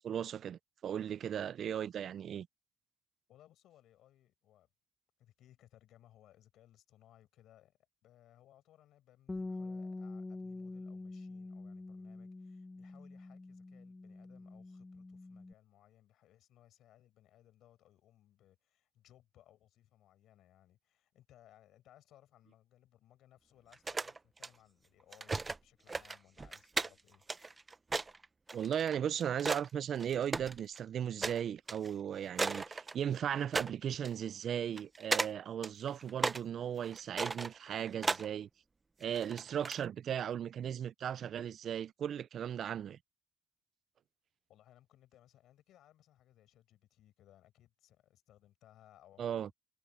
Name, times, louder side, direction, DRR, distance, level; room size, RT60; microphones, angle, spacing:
voice 1, 0.0-2.5 28.5-38.5 39.0-43.0 49.2-49.5, right 9 dB, 65° right, 0.4 m, -37 dB
voice 2, 3.3-4.7 5.2-27.2 44.5-49.5, left 12 dB, 80° left, 4.9 m, -64 dB
Bass guitar, 9.3-15.5, left 3 dB, 20° left, 1.4 m, -45 dB
sound 1, 23.7-24.5 25.1-25.6 25.9-29.7 30.0-30.8 31.2-31.4 31.7-31.9 32.4-33.2 33.5-33.7 34.0-34.1 34.8-35.3 35.6-36.4 36.8-38.3 39.0-39.8, right 3 dB, 25° right, 0.6 m, -36 dB
cardioid pair, 90°, 0 cm